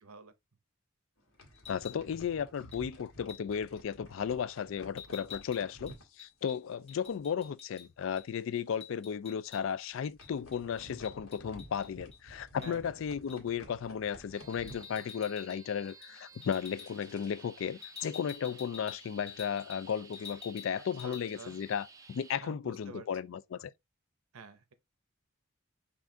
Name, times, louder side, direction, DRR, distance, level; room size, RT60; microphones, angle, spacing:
voice 1, 0.0-0.3 12.6-13.0 21.0-21.6 22.4-23.1 24.3-24.7, right 4 dB, 85° right, 0.7 m, -49 dB
sound 1, 1.2-7.5 7.8-8.0 8.3-8.4 9.0-9.2 9.8-15.6 15.8-20.5, equal, 80° left, 1.5 m, -54 dB
sound 2, 1.5-2.0 2.7-2.9 3.3-3.6 5.0-7.9 8.2-8.3 8.6-9.9 10.2-12.2 12.6-12.8 13.3-13.5 14.5-15.6 15.9-16.1 16.4-16.9 17.8-19.9 20.1-20.7 21.0-21.2, left 8 dB, 30° left, 2.1 m, -49 dB
voice 2, 1.7-23.7, left 7 dB, 60° left, 0.3 m, -35 dB
sound 3, 14.3-22.4, right 5 dB, 15° right, 0.4 m, -55 dB
5.8 x 2.4 x 3.7 m
head